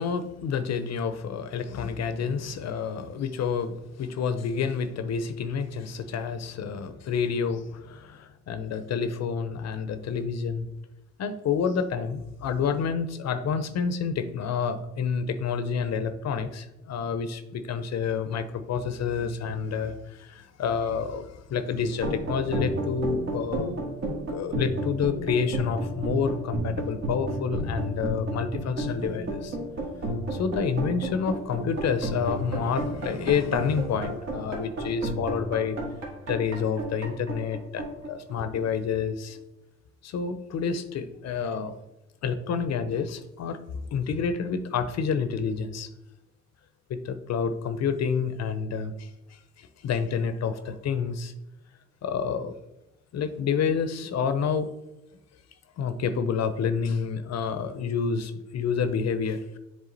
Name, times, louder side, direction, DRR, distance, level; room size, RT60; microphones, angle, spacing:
voice 1, 0.0-10.7 11.2-23.7 24.3-29.6 30.3-35.8 36.3-39.4 40.0-41.7 42.2-43.6 43.9-45.9 46.9-51.3 52.0-52.5 53.1-54.7 55.8-59.6, left 6 dB, 60° left, 11 dB, 0.6 m, -29 dB
sound 1, 21.9-38.8, right 1 dB, 60° right, 1.8 m, -32 dB
7.3 x 3.5 x 3.9 m, 0.95 s
cardioid pair, 90°, 30 cm